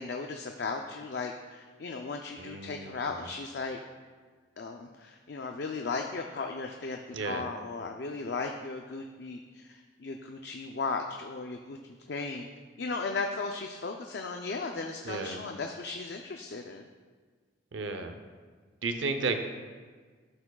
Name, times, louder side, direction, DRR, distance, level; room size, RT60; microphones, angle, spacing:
voice 1, 0.0-3.8 4.6-11.8 12.1-12.5 12.8-16.8, left 4 dB, 60° left, 3 dB, 0.4 m, -36 dB
voice 2, 2.4-3.1 7.1-7.5 15.0-15.4 17.7-18.2 18.8-19.4, right 3 dB, 75° right, 7 dB, 0.6 m, -33 dB
12.0 x 7.0 x 2.3 m, 1.5 s
head